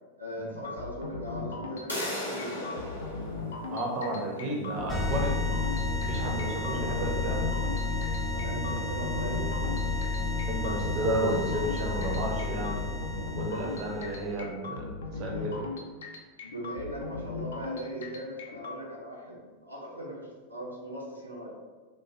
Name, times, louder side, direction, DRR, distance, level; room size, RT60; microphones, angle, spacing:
voice 1, 0.2-3.0 6.4-7.0 8.3-9.7 15.0-15.6 16.4-21.5, right 1 dB, 85° right, -4 dB, 0.5 m, -39 dB
sound 1, 0.6-18.8, left 4 dB, 65° left, 0.3 m, -39 dB
sound 2, 1.9-7.5, left 1 dB, 85° left, 0.8 m, -40 dB
voice 2, 3.7-5.3 6.1-7.4 10.5-12.8 13.3-15.5, right 1 dB, 40° right, 0 dB, 0.5 m, -32 dB
sound 3, 4.9-14.3, left 3 dB, 15° left, 0.6 m, -31 dB
3.0 x 2.2 x 2.5 m, 1.4 s
figure-of-eight pair, 90°, 0 cm